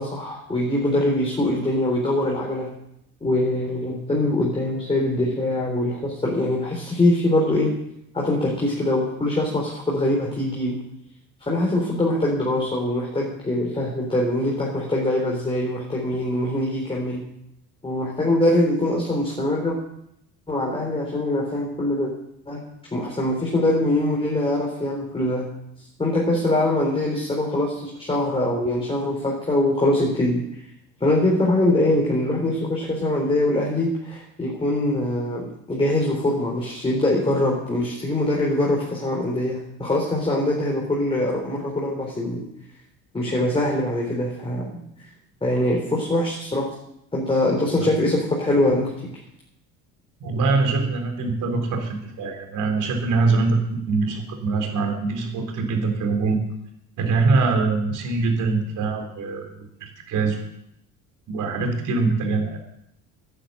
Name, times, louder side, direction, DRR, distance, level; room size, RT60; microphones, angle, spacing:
voice 1, 0.0-2.7 3.2-7.7 8.1-10.8 11.4-17.2 17.8-19.8 20.5-22.1 22.5-22.6 22.9-25.5 26.0-30.6 31.0-42.4 43.1-44.8 45.4-46.7 47.1-48.9, left 1 dB, 15° left, -3 dB, 3.9 m, -23 dB
voice 2, 50.2-56.4 57.0-59.5 59.8-60.4 61.3-62.6, right 3 dB, 60° right, 4 dB, 4.1 m, -23 dB
11.5 x 10.0 x 8.8 m, 0.77 s
cardioid pair, 115°, 35 cm